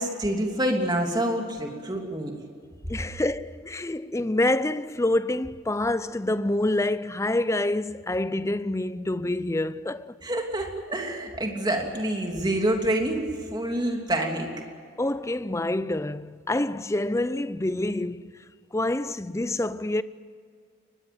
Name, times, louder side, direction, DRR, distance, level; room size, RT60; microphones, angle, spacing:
voice 1, 0.0-2.3 10.2-14.5, right 1 dB, 20° right, 3.0 m, -27 dB
voice 2, 2.9-10.2 15.0-18.4 18.7-20.0, left 1 dB, 15° left, 0.5 m, -27 dB
23.5 x 20.0 x 7.9 m
head